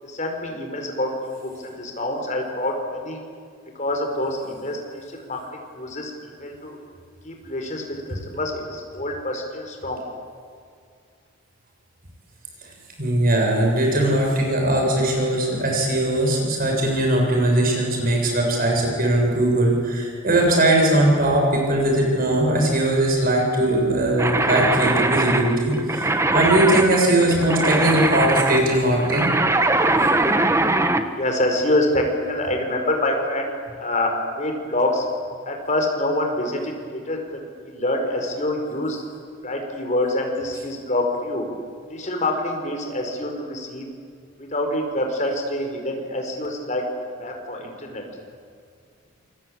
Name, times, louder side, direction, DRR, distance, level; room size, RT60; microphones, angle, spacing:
voice 1, 0.0-3.2 3.8-5.4 5.7-6.8 7.2-10.0 31.1-33.5 33.8-35.1 35.5-39.0 39.4-41.5 41.9-43.9 44.4-46.8 47.2-48.0, left 1 dB, 35° left, 3 dB, 4.9 m, -26 dB
voice 2, 13.0-29.3, right 1 dB, 45° right, 0 dB, 7.1 m, -20 dB
sound 1, 24.2-31.1, right 2 dB, 15° right, 1.2 m, -21 dB
27.5 x 23.0 x 8.9 m, 2.2 s
head